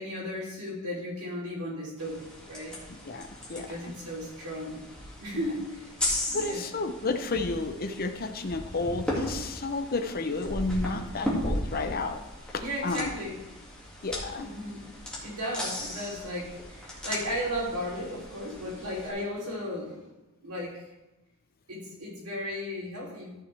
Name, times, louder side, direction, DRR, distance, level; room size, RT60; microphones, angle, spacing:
voice 1, 0.0-2.8 3.5-4.8 5.2-5.8 6.3-6.7 12.6-13.4 14.4-14.9 15.2-20.1 20.4-20.8 21.7-23.3, equal, 85° right, -4 dB, 3.3 m, -35 dB
sound 1, 2.0-19.1, left 1 dB, 5° left, 2.2 m, -37 dB
voice 2, 2.9-3.7 6.3-12.2 12.8-13.1 14.0-14.5, left 3 dB, 40° left, 7 dB, 0.7 m, -31 dB
13.5 x 6.2 x 3.4 m, 1.0 s
head